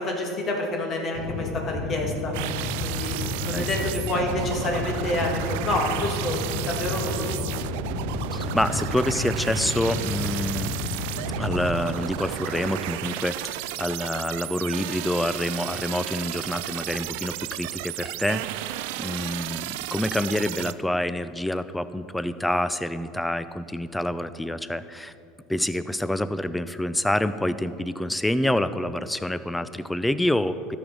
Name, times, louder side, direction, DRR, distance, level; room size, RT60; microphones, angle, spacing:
voice 1, 0.0-2.3 2.8-3.2 3.4-7.5, left 1 dB, 40° left, 1 dB, 2.0 m, -28 dB
sound 1, 1.1-11.7, left 3 dB, 65° left, 1.1 m, -31 dB
sound 2, 2.3-20.7, right 15 dB, 70° right, 0.3 m, -33 dB
voice 2, 8.3-10.7 11.4-25.1 25.5-30.8, left 1 dB, 5° left, 13 dB, 0.5 m, -27 dB
13.5 x 6.3 x 5.2 m, 2.7 s
hypercardioid pair, 75°, 0 cm